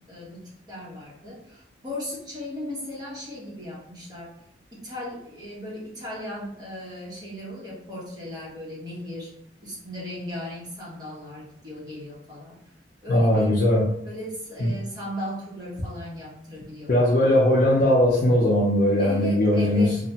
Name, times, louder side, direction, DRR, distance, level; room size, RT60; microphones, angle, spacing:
voice 1, 0.0-4.4 4.7-9.3 9.6-12.6 13.0-13.5 14.0-17.2 19.0-20.0, left 1 dB, 25° right, -6 dB, 1.0 m, -36 dB
voice 2, 13.1-13.9 16.9-19.9, left 1 dB, 50° left, -6 dB, 0.5 m, -19 dB
2.8 x 2.1 x 2.8 m, 0.74 s
head